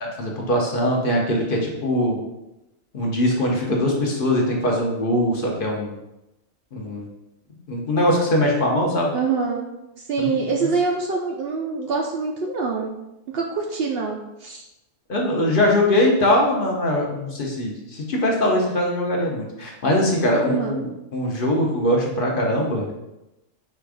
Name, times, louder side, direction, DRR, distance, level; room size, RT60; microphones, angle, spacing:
voice 1, 0.0-2.2 2.9-5.9 6.7-7.1 7.7-9.1 10.2-10.4 15.1-22.9, left 1 dB, 50° left, -1 dB, 0.9 m, -21 dB
voice 2, 9.1-9.7 10.1-13.0 13.3-14.6 20.5-20.8, right 4 dB, 65° right, 0 dB, 0.7 m, -25 dB
4.2 x 2.4 x 4.7 m, 0.93 s
omnidirectional pair, 1.3 m